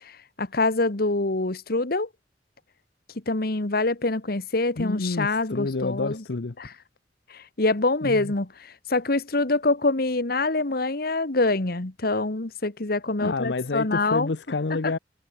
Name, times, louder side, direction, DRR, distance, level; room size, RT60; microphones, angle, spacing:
voice 1, 0.0-2.1 3.3-6.2 6.6-6.7 7.3-14.3 14.8-14.9, left 2 dB, 60° left, 1.5 m, -25 dB
voice 2, 4.8-6.5 8.0-8.3 13.2-15.0, left 3 dB, 75° left, 0.8 m, -28 dB
head